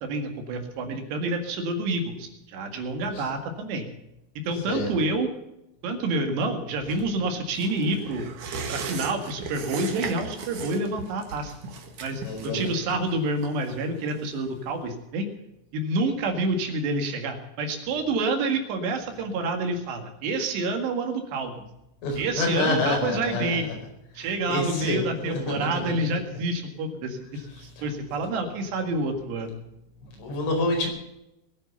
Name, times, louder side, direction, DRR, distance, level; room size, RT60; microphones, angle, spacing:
voice 1, 0.0-3.9 4.5-5.3 5.8-8.3 8.7-11.5 12.0-12.2 12.5-15.3 15.7-21.5 22.2-23.7 24.2-29.6, right 2 dB, 70° right, 5 dB, 3.9 m, -28 dB
sound 1, 7.5-14.6 14.9-15.0, right 5 dB, 55° right, 2.7 m, -37 dB
voice 2, 12.2-12.7 22.0-23.6 24.2-25.8 27.8-27.9 30.2-30.9, left 2 dB, 80° left, 1 dB, 7.1 m, -27 dB
21.0 x 8.9 x 6.9 m, 0.88 s
omnidirectional pair, 5.3 m